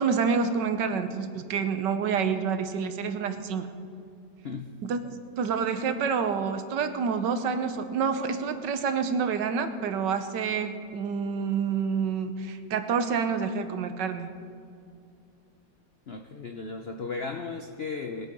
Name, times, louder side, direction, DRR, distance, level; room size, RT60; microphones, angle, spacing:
voice 1, 0.0-3.7 4.8-5.0 5.4-14.3, right 6 dB, 80° right, 9 dB, 1.5 m, -28 dB
voice 2, 4.4-4.8 16.1-18.3, left 4 dB, 65° left, 5 dB, 0.6 m, -35 dB
20.5 x 8.2 x 5.4 m, 2.5 s
omnidirectional pair, 1.9 m